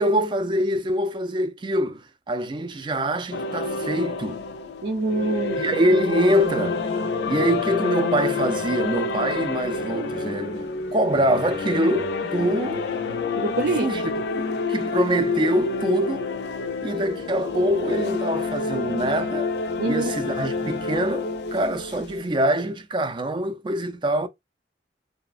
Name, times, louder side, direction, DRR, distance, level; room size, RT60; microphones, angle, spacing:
voice 1, 0.0-4.4 5.6-6.8 7.3-12.8 13.8-14.0 14.7-16.3 16.8-19.5 19.8-24.3, right 1 dB, 25° right, 0.4 m, -24 dB
sound 1, 3.3-22.3, left 4 dB, 65° left, 0.4 m, -28 dB
voice 2, 4.8-5.6 13.3-13.9 19.8-20.2, right 2 dB, 80° right, 0.7 m, -25 dB
3.1 x 2.0 x 2.4 m
head